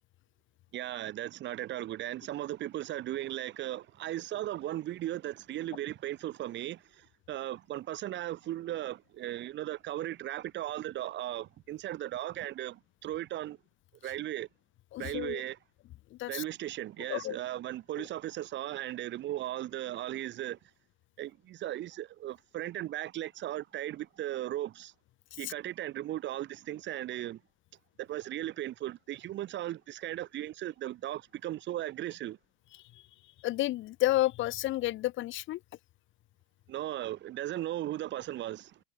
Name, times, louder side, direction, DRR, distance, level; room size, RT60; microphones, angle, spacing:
voice 1, 0.7-13.6 14.0-14.5 15.0-15.6 16.3-20.6 21.2-24.9 25.4-27.4 28.0-32.4 36.7-38.8, right 13 dB, 35° right, 2.3 m, -37 dB
voice 2, 14.9-15.4 16.2-16.4 17.1-17.4 33.4-35.6, left 16 dB, 40° left, 1.5 m, -30 dB
supercardioid pair, 140°, 30 cm